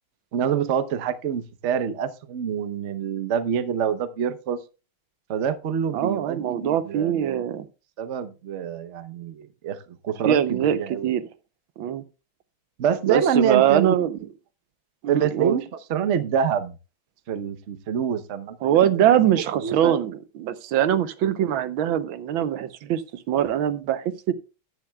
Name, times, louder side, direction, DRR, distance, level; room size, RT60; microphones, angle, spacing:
voice 1, 0.3-4.6 5.3-7.5 8.0-9.8 10.0-11.1 12.8-14.0 15.1-16.7 17.3-18.6 18.8-18.9 19.3-19.9, right 8 dB, 50° right, 0.9 m, -26 dB
voice 2, 5.9-7.7 10.2-11.3 11.8-12.0 13.1-14.2 15.0-15.6 18.6-23.0 23.3-24.3, right 10 dB, 85° right, 1.6 m, -22 dB
14.0 x 10.5 x 2.3 m
omnidirectional pair, 2.2 m